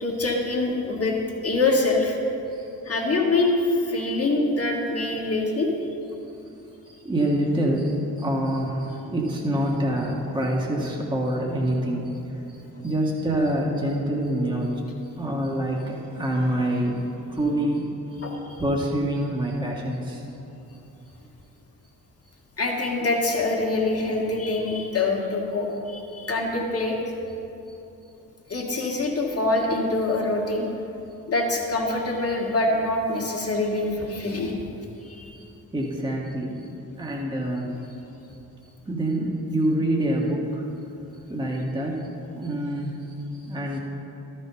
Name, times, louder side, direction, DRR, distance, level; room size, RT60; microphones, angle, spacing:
voice 1, 0.0-1.2 1.4-2.2 2.9-5.7 9.6-9.7 12.8-12.9 18.2-18.6 22.6-27.0 28.5-30.7 31.3-34.5 35.0-35.3, left 2 dB, 35° left, 0 dB, 1.8 m, -25 dB
voice 2, 2.5-2.9 7.0-12.1 12.8-14.8 15.2-17.0 17.3-17.9 18.2-18.3 18.6-20.2 35.4-35.5 35.7-36.7 37.0-37.8 38.9-40.6 41.3-43.8, right 1 dB, 10° right, -2 dB, 1.4 m, -26 dB
12.5 x 4.5 x 5.5 m, 2.9 s
hypercardioid pair, 40°, 43 cm